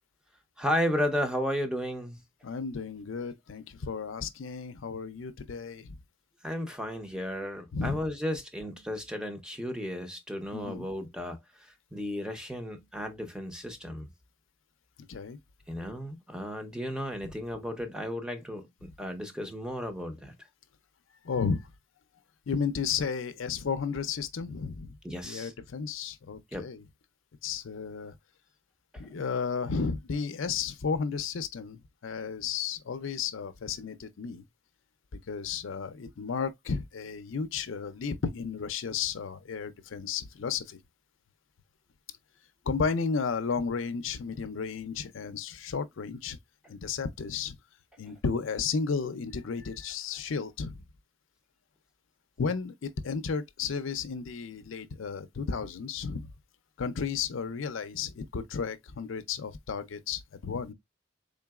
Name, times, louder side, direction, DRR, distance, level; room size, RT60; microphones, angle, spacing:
voice 1, 0.6-2.2 6.4-11.4 11.9-14.1 15.7-20.3 25.0-25.5 26.5-26.7, equal, 5° right, 0.7 m, -33 dB
voice 2, 2.4-6.0 7.7-8.0 10.5-10.9 15.1-15.4 21.2-21.7 22.5-25.0 25.2-26.8 27.4-28.1 29.0-34.5 35.3-40.8 42.7-46.4 46.7-47.5 48.0-50.8 52.4-56.3 56.8-60.7, left 5 dB, 70° left, 0.5 m, -33 dB
3.8 x 3.7 x 2.3 m
head